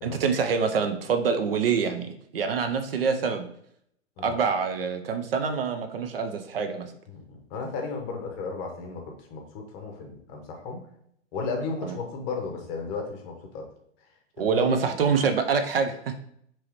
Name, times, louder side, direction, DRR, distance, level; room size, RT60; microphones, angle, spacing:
voice 1, 0.0-3.5 4.2-6.9 11.8-12.0 14.4-16.1, right 5 dB, 55° right, 7 dB, 0.5 m, -26 dB
voice 2, 7.1-10.8 11.3-13.7 14.5-14.8, left 4 dB, 25° left, 2 dB, 0.8 m, -34 dB
4.7 x 3.0 x 3.0 m, 0.70 s
figure-of-eight pair, 110°, 36 cm